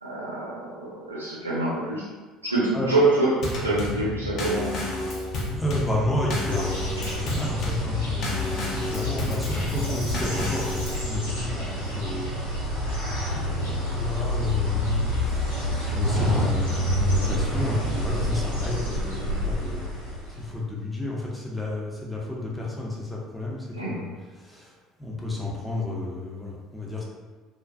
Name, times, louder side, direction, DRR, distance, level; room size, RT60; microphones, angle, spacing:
voice 1, 0.0-2.1 2.4-5.0 23.7-24.1, right 2 dB, 90° right, -8 dB, 0.6 m, -26 dB
Drum kit / Snare drum / Bass drum, 3.4-11.1, left 2 dB, 50° left, 0.5 m, -31 dB
voice 2, 5.6-12.8 13.3-19.9 20.3-24.1 24.4-24.7 25.0-27.0, left 2 dB, 10° left, -4 dB, 0.6 m, -31 dB
sound 1, 6.5-20.6, left 1 dB, 90° left, 0.7 m, -28 dB
2.5 x 2.2 x 2.3 m, 1.3 s
figure-of-eight pair, 60°, 0 cm